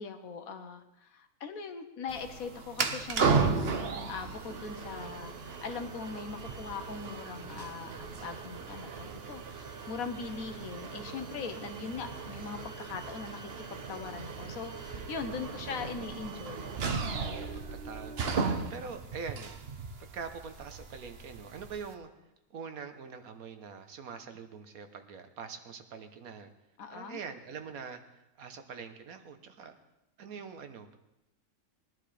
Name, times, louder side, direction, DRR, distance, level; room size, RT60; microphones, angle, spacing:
voice 1, 0.0-16.7 26.8-27.2, left 5 dB, 80° left, 7 dB, 1.5 m, -41 dB
sound 1, 2.1-21.9, right 5 dB, 50° right, 1.0 m, -36 dB
voice 2, 15.6-16.1 17.5-19.6 20.0-22.1 22.5-26.5 26.9-29.7 30.2-31.0, right 5 dB, 85° right, 7 dB, 1.5 m, -44 dB
20.5 x 11.0 x 3.4 m, 0.91 s
omnidirectional pair, 1.5 m